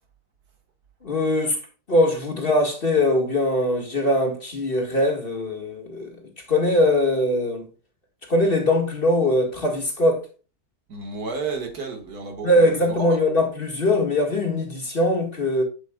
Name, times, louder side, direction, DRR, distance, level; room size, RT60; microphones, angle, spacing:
voice 1, 1.0-1.6 1.9-7.7 8.2-10.3 12.4-15.6, left 1 dB, 35° left, 1.9 m, -21 dB
voice 2, 10.9-13.2, right 4 dB, 75° right, 2.2 m, -32 dB
8.1 x 7.7 x 2.3 m
omnidirectional pair, 1.7 m